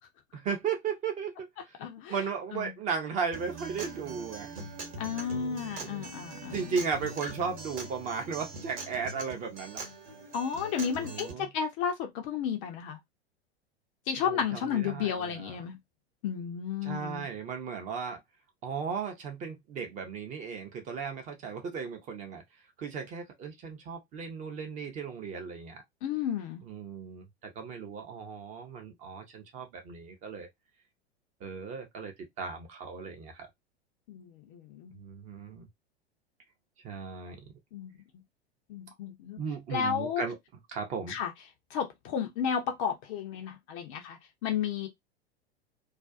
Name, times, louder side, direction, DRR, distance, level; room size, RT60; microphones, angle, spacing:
voice 1, 0.3-1.8 2.1-4.5 5.3-6.1 6.5-9.8 11.0-11.5 14.2-15.6 16.8-18.2 18.6-22.4 22.8-25.8 26.6-30.5 31.4-33.5 34.9-35.7 36.8-37.4 39.4-40.4 40.7-41.2, right 6 dB, 25° right, 0.5 m, -36 dB
voice 2, 1.8-2.1 2.5-2.7 5.0-6.8 10.3-13.0 14.1-15.8 16.2-17.3 26.0-26.6 34.1-35.0 37.7-37.9 38.7-39.4 39.7-40.2 41.1-41.3 41.7-44.9, left 7 dB, 30° left, 0.4 m, -33 dB
Acoustic guitar, 3.3-11.3, right 2 dB, 45° right, 1.0 m, -42 dB
2.4 x 2.2 x 2.4 m
figure-of-eight pair, 95°, 32 cm